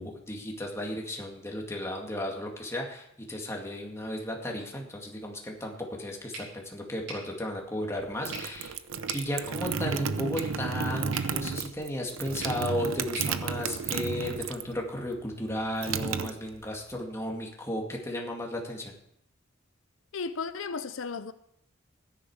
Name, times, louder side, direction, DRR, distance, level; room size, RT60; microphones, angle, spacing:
voice 1, 0.0-8.8 9.1-18.9, left 1 dB, 15° left, 2.2 m, -34 dB
sound 1, 6.3-14.4, right 2 dB, 70° right, 6.1 m, -47 dB
sound 2, 8.0-14.8 15.1-16.9, right 6 dB, 90° right, 0.7 m, -32 dB
voice 2, 20.1-21.3, left 4 dB, 85° left, 0.6 m, -34 dB
15.5 x 10.5 x 4.9 m
head